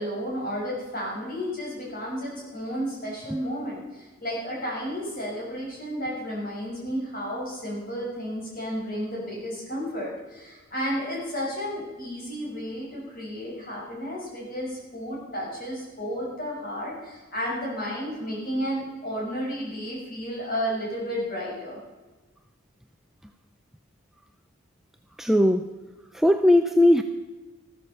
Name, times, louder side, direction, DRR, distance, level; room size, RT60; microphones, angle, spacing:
voice 1, 0.0-21.8, equal, 40° left, -3 dB, 6.0 m, -32 dB
voice 2, 25.2-25.8 26.1-27.0, left 1 dB, ahead, 6 dB, 0.4 m, -19 dB
14.0 x 13.5 x 5.5 m, 1.2 s
head